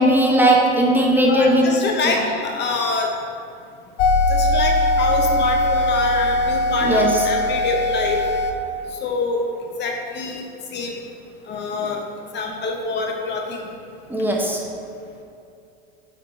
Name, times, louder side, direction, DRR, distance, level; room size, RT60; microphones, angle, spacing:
voice 1, 0.0-1.7 6.8-7.3 14.1-14.6, right 1 dB, 5° right, -2 dB, 0.9 m, -17 dB
voice 2, 1.3-3.1 4.3-8.2 9.0-9.4 9.8-10.4 10.7-11.0 11.5-12.0 12.3-13.7, left 3 dB, 35° left, 2 dB, 0.8 m, -25 dB
sound 1, 4.0-8.5, left 1 dB, 75° left, 1.1 m, -20 dB
6.5 x 5.7 x 3.9 m, 2.5 s
hypercardioid pair, 110°, 32 cm